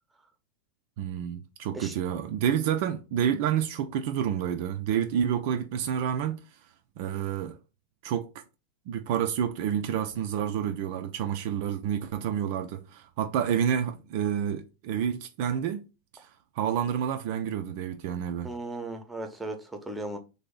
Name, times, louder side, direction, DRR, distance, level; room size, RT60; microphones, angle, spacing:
voice 1, 1.0-6.4 7.0-7.6 8.0-8.4 8.9-15.8 16.1-16.3 16.6-18.5, right 9 dB, 50° right, 0.4 m, -29 dB
voice 2, 18.4-20.2, right 2 dB, 5° right, 0.8 m, -36 dB
3.3 x 2.7 x 3.8 m
figure-of-eight pair, 90°, 0 cm